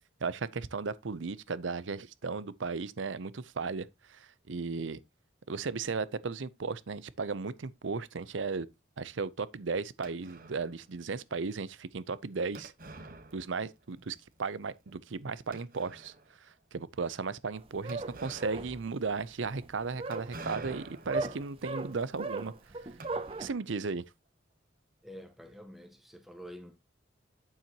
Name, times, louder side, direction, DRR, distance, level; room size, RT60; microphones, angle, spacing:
voice 1, 0.2-5.0 5.5-8.7 9.0-12.7 13.3-16.1 16.7-22.5 23.4-24.0, right 4 dB, 85° right, 0.7 m, -35 dB
sound 1, 10.0-10.8 12.5-13.9 14.2-14.3 14.9-15.0 15.5-16.4 17.9-23.8, right 2 dB, 45° right, 1.3 m, -49 dB
sound 2, 17.5-23.5, right 3 dB, 30° right, 0.7 m, -38 dB
voice 2, 25.0-26.8, equal, ahead, 1.4 m, -48 dB
8.8 x 7.4 x 3.0 m
head